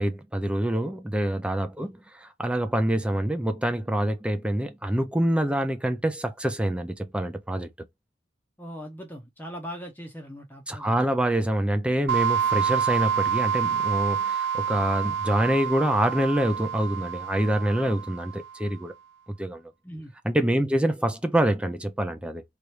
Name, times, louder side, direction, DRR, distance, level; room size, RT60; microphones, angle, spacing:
voice 1, 0.0-7.7 10.7-18.9 19.4-19.6 20.2-22.4, right 1 dB, 5° right, 0.5 m, -26 dB
voice 2, 8.6-11.2 19.8-20.1 20.5-20.8, equal, 10° left, 0.9 m, -40 dB
sound 1, 12.1-18.6, right 7 dB, 65° right, 0.3 m, -28 dB
3.3 x 2.6 x 4.3 m
head